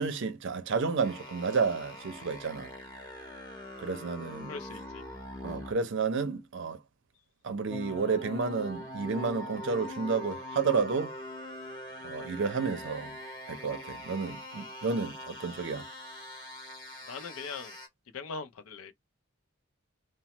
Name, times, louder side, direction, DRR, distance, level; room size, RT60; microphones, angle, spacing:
voice 1, 0.0-2.7 3.8-4.5 5.4-6.8 7.4-11.1 12.0-13.2 13.5-15.9, right 5 dB, 60° right, 0.5 m, -31 dB
sound 1, 1.0-5.8 7.7-17.9, left 1 dB, 20° left, 0.8 m, -43 dB
voice 2, 4.5-5.0 17.1-17.8 18.1-18.9, left 5 dB, 75° left, 0.5 m, -40 dB
3.0 x 2.0 x 2.8 m
head